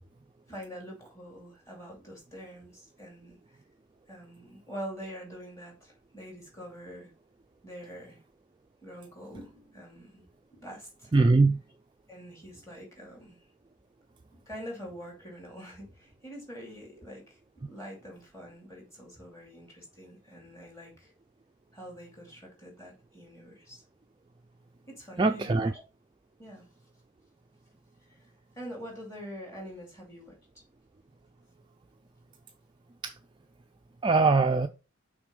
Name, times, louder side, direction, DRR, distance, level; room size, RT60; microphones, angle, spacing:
voice 1, 0.5-3.6 4.1-7.1 7.6-8.2 8.8-10.2 10.5-11.3 12.1-13.5 14.3-21.1 21.7-23.8 24.9-25.8 26.4-26.7 28.1-30.4, equal, 15° left, 2.5 m, -45 dB
voice 2, 11.1-11.6 25.2-25.7 33.0-33.1 34.0-34.7, right 3 dB, 20° right, 0.3 m, -22 dB
6.0 x 4.1 x 5.3 m
head